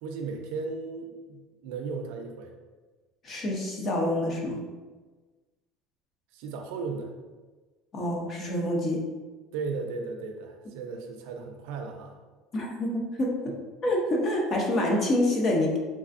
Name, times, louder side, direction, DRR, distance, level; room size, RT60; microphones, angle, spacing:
voice 1, 0.0-2.5 6.3-7.1 9.5-12.2 13.5-13.6, right 4 dB, 70° right, 3 dB, 0.5 m, -36 dB
voice 2, 3.2-4.6 7.9-9.0 12.5-13.5 13.8-15.8, left 1 dB, 25° left, 0 dB, 0.5 m, -27 dB
3.5 x 3.2 x 2.5 m, 1.3 s
cardioid pair, 180°, 0 cm